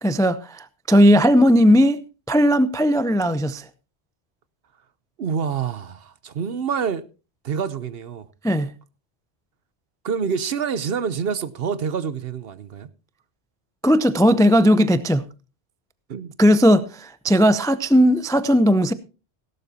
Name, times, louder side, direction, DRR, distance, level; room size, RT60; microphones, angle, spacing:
voice 1, 0.0-2.0 2.3-3.7 8.4-8.7 13.8-15.3 16.4-18.9, equal, 5° left, 0.3 m, -17 dB
voice 2, 5.2-7.0 7.4-8.2 10.0-12.9 16.1-16.3, right 6 dB, 60° right, 1.0 m, -27 dB
17.0 x 12.0 x 2.8 m
omnidirectional pair, 1.2 m